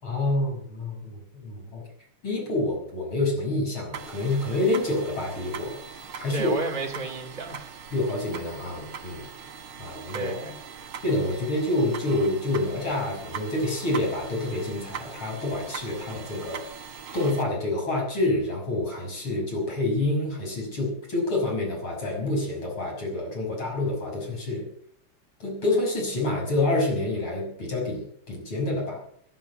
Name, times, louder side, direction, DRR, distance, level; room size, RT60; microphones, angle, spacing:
voice 1, 0.0-1.8 2.2-5.8 6.2-6.5 7.9-9.3 9.8-10.3 11.0-16.6 17.1-24.6 25.4-29.0, left 2 dB, 75° left, 0 dB, 7.0 m, -27 dB
sound 1, 3.9-17.4, right 7 dB, 75° right, 2.3 m, -41 dB
voice 2, 6.3-7.8 10.1-10.9, right 3 dB, 25° right, -1 dB, 2.8 m, -33 dB
16.0 x 11.0 x 8.1 m, 0.66 s
omnidirectional pair, 2.3 m